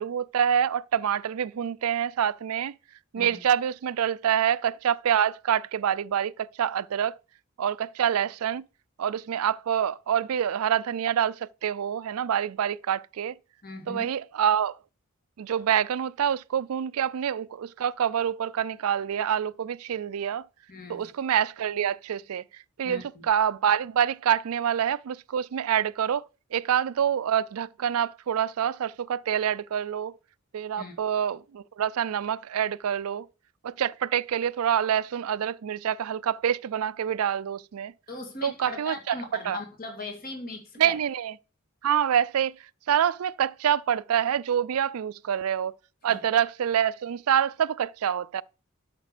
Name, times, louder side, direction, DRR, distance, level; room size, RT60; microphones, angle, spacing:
voice 1, 0.0-2.7 3.1-6.3 6.6-7.1 7.6-8.6 9.0-11.4 11.6-13.4 13.9-14.7 15.4-20.4 20.9-22.4 22.8-26.2 26.5-30.1 30.5-33.3 33.6-37.9 38.4-39.2 39.5-39.6 40.8-41.3 41.8-42.5 42.9-45.7 46.0-48.4, right 9 dB, 80° right, 0.4 m, -26 dB
voice 2, 13.6-14.1 20.7-21.1 22.8-23.3 30.8-31.0 38.1-41.0 46.1-46.2, left 2 dB, 40° left, 2.1 m, -39 dB
12.5 x 5.9 x 5.0 m
head